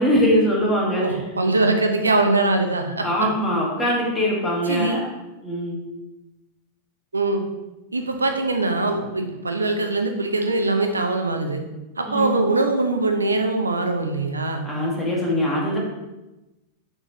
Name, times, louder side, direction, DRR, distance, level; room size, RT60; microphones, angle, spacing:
voice 1, 0.0-1.0 3.0-5.0 5.4-5.8 12.1-12.4 14.6-15.8, equal, 15° left, -4 dB, 1.9 m, -22 dB
voice 2, 1.0-3.3 4.6-5.0 7.1-7.4 7.9-11.6 12.0-14.6, right 2 dB, 80° right, 5 dB, 0.8 m, -22 dB
6.1 x 5.1 x 3.1 m, 1.0 s
figure-of-eight pair, 90°, 0 cm